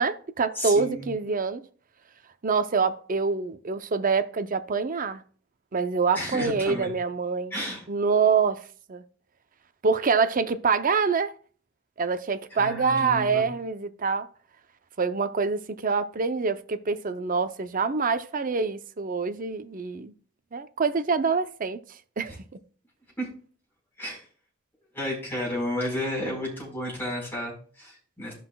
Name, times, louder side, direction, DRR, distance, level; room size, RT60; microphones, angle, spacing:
voice 1, 0.0-1.6 2.4-5.2 5.7-7.5 7.9-8.6 8.9-9.0 9.8-11.3 12.0-14.3 15.0-20.1 20.5-21.8 22.2-22.4, right 5 dB, 40° right, 0.6 m, -25 dB
voice 2, 0.5-1.1 6.1-6.9 7.5-7.8 12.5-13.5 23.2-23.3 24.0-24.2 24.9-28.3, left 1 dB, 10° left, 4.5 m, -32 dB
14.5 x 5.8 x 2.3 m
head